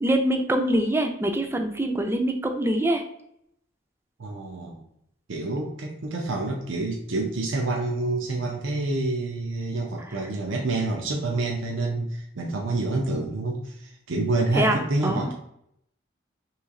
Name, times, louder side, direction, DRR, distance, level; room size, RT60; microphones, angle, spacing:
voice 1, 0.0-3.0 14.5-15.3, right 1 dB, 15° right, 4 dB, 0.4 m, -24 dB
voice 2, 4.2-4.8 5.3-15.3, right 2 dB, 90° right, 0 dB, 0.6 m, -28 dB
3.1 x 3.0 x 3.6 m, 0.74 s
head